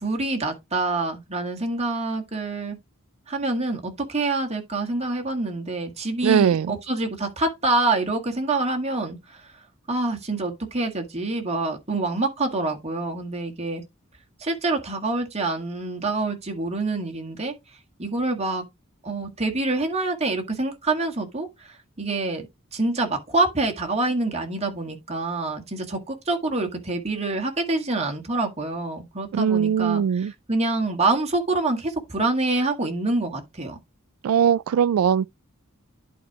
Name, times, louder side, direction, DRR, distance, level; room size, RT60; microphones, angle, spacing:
voice 1, 0.0-2.8 3.3-9.5 9.9-13.8 14.4-17.5 18.0-18.6 19.0-22.5 22.7-33.8, right 2 dB, 30° right, 1.7 m, -26 dB
voice 2, 6.2-6.7 29.3-30.3 34.2-35.3, right 8 dB, 80° right, 0.3 m, -20 dB
11.0 x 4.7 x 2.9 m
head